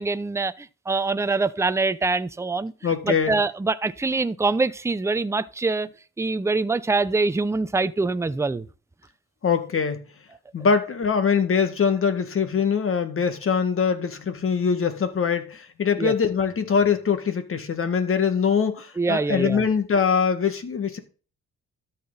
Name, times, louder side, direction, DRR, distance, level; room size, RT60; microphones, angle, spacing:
voice 1, 0.0-2.7 3.0-5.9 6.2-8.7 16.0-16.1 19.0-19.6, right 3 dB, 10° right, 0.6 m, -24 dB
voice 2, 2.8-3.4 9.4-10.0 10.5-21.0, left 6 dB, 45° left, 1.9 m, -23 dB
13.0 x 5.9 x 4.1 m
cardioid pair, 90°, 30 cm